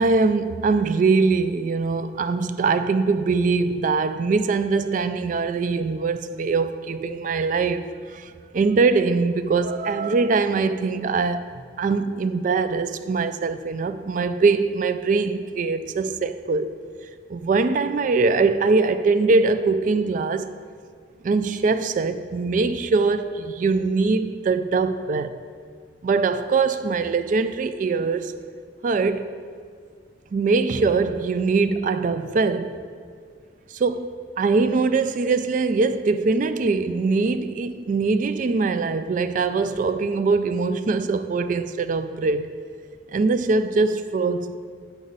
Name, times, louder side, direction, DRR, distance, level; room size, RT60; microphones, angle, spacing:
voice 1, 0.0-11.5 11.8-16.8 17.3-20.5 21.2-25.4 26.0-28.3 28.8-29.3 30.3-32.8 33.7-42.5 43.1-44.6, right 4 dB, 45° right, 0.3 m, -22 dB
9.0 x 5.1 x 4.0 m
head